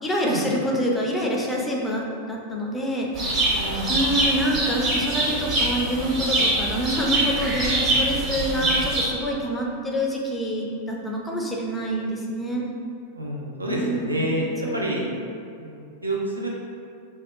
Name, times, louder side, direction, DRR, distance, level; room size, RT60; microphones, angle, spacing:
voice 1, 0.0-12.6 13.7-15.0, equal, 10° left, -2 dB, 0.3 m, -27 dB
sound 1, 3.1-9.0, right 2 dB, 35° right, 0.7 m, -24 dB
voice 2, 3.5-4.0 8.6-8.7 13.1-14.5 14.7-15.0 15.6-16.5, right 1 dB, 80° right, -3 dB, 0.3 m, -28 dB
2.6 x 2.1 x 2.2 m, 2.4 s
figure-of-eight pair, 90°, 0 cm